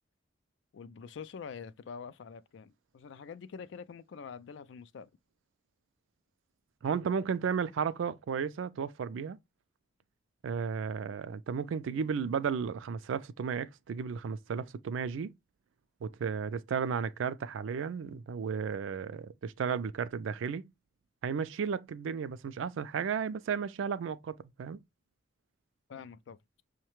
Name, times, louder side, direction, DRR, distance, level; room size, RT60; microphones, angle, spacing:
voice 1, 0.7-5.1 25.9-26.4, left 6 dB, 70° left, 0.3 m, -45 dB
voice 2, 6.8-9.4 10.4-15.3 16.0-20.7 21.2-24.8, right 6 dB, 80° right, 0.3 m, -34 dB
5.5 x 2.2 x 3.0 m
head